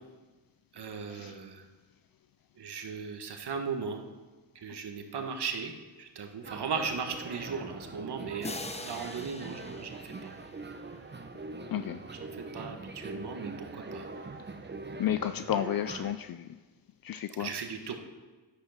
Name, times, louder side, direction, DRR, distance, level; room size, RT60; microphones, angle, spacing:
voice 1, 0.7-1.6 2.6-4.0 4.5-5.7 6.0-10.3 12.3-14.0 17.4-17.9, right 5 dB, 60° right, 5 dB, 1.6 m, -37 dB
sound 1, 6.4-16.2, right 3 dB, 25° right, 1.0 m, -43 dB
sound 2, 8.4-11.2, left 2 dB, 15° left, 0.8 m, -43 dB
voice 2, 11.7-12.0 15.0-16.6 17.0-17.5, left 11 dB, 50° left, 11 dB, 0.5 m, -32 dB
9.9 x 9.5 x 5.8 m, 1.3 s
cardioid pair, 65°, 44 cm